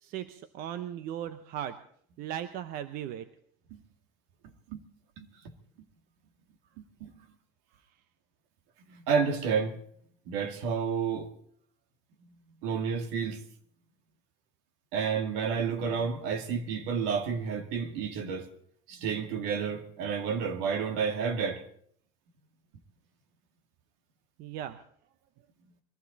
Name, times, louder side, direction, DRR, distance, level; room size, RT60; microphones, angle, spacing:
voice 1, 0.0-1.8 2.2-3.3 24.4-24.8, right 11 dB, 55° right, 0.9 m, -37 dB
voice 2, 8.9-9.8 10.3-11.3 12.6-13.4 14.9-18.5 18.9-21.6, right 6 dB, 75° right, 2.2 m, -30 dB
22.0 x 15.0 x 4.1 m
cardioid pair, 140°, 18 cm